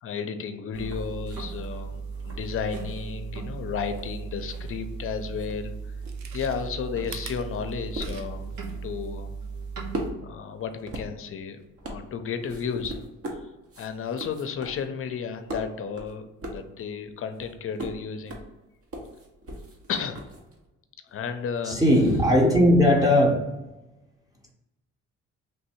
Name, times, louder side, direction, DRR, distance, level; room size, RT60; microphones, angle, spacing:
voice 1, 0.0-5.7 6.3-8.6 8.8-9.3 10.2-13.0 13.8-18.4 19.9-20.2 21.1-21.8, left 6 dB, 45° left, 8 dB, 0.5 m, -33 dB
sound 1, 0.7-10.1, right 5 dB, 90° right, 1.2 m, -37 dB
sound 2, 0.8-5.0 5.3-20.7, right 1 dB, 50° right, 0.9 m, -41 dB
Chewing mastication, 5.1-5.2 5.9-8.6 8.9-9.0, right 7 dB, 65° right, 0.6 m, -45 dB
voice 2, 21.6-23.5, left 1 dB, 10° right, -1 dB, 0.8 m, -19 dB
3.3 x 2.6 x 4.3 m, 1.0 s
cardioid pair, 90°, 30 cm